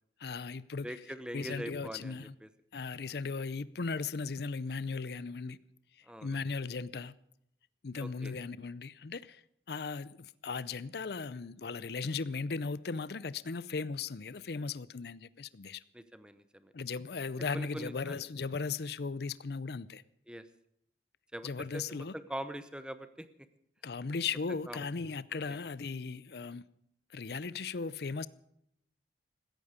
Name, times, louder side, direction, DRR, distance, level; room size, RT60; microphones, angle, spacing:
voice 1, 0.2-1.0 1.3-2.3 2.7-5.6 6.2-7.1 7.8-9.4 9.7-15.8 16.7-20.0 21.4-22.1 23.8-26.6 27.1-28.3, left 4 dB, 60° left, 0.5 m, -37 dB
voice 2, 0.8-2.5 6.0-6.4 8.0-8.3 15.9-16.7 17.5-18.2 20.3-20.5 21.3-23.3 24.7-24.8 25.5-25.6, right 1 dB, 5° right, 0.9 m, -43 dB
16.5 x 14.5 x 5.1 m
head